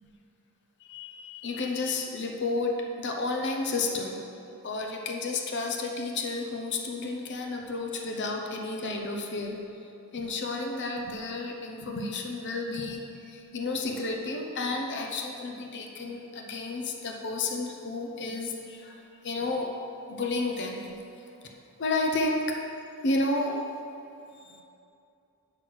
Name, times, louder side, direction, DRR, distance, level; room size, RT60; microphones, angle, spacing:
voice 1, 0.8-4.2 4.6-9.6 10.1-13.0 13.3-19.0 19.2-19.7 20.1-20.9 21.8-22.6 23.0-23.6, left 2 dB, 50° left, 2 dB, 0.8 m, -31 dB
7.6 x 6.1 x 6.3 m, 2.7 s
head